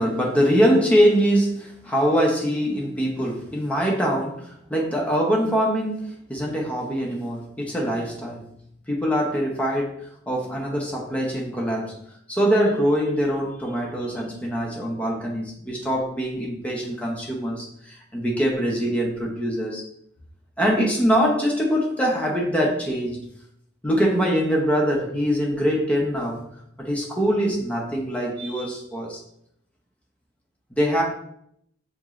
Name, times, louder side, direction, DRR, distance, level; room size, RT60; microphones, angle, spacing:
voice 1, 0.0-8.5 8.9-12.0 12.3-19.8 20.6-23.2 23.8-26.5 26.8-29.2 30.7-31.0, equal, 5° left, -2 dB, 0.8 m, -23 dB
5.3 x 2.9 x 2.4 m, 0.71 s
head